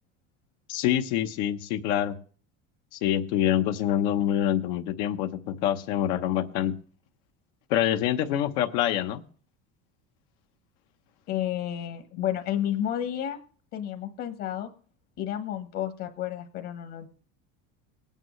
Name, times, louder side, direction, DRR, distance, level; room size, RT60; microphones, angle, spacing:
voice 1, 0.7-2.1 2.9-6.7 7.7-9.2, left 11 dB, 80° left, 5 dB, 1.0 m, -26 dB
voice 2, 11.3-13.4 13.7-14.7 15.2-17.1, left 11 dB, 50° left, 6 dB, 1.3 m, -31 dB
19.5 x 8.9 x 3.2 m, 0.42 s
cardioid pair, 165°, 33 cm